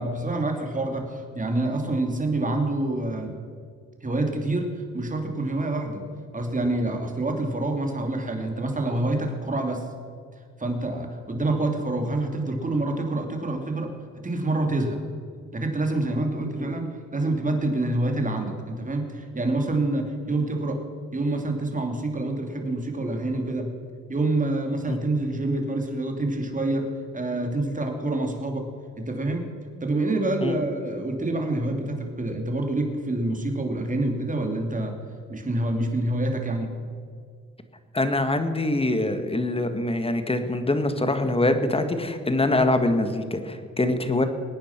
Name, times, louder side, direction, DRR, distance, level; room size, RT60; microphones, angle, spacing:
voice 1, 0.0-3.3 4.0-6.0 6.3-9.9 10.6-13.9 14.2-15.0 15.5-20.8 21.1-23.7 24.1-28.7 29.0-29.5 29.8-35.0 35.3-36.7, right 2 dB, 25° right, 3 dB, 2.8 m, -27 dB
voice 2, 37.9-44.3, left 2 dB, 20° left, 8 dB, 1.7 m, -24 dB
22.0 x 9.3 x 6.0 m, 2.1 s
cardioid pair, 85°, 32 cm